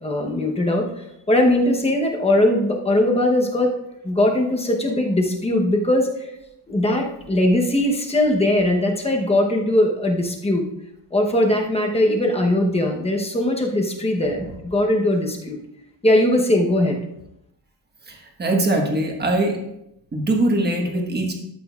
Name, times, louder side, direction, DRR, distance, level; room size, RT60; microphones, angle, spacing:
voice 1, 0.0-0.9 1.3-3.7 4.0-6.1 6.7-10.7 11.1-15.6 16.0-17.0, left 1 dB, 15° left, 1 dB, 0.9 m, -20 dB
voice 2, 18.1-19.6 20.1-21.3, right 2 dB, 25° right, 1 dB, 1.3 m, -22 dB
12.5 x 7.6 x 2.4 m, 0.84 s
wide cardioid pair, 180°, 42 cm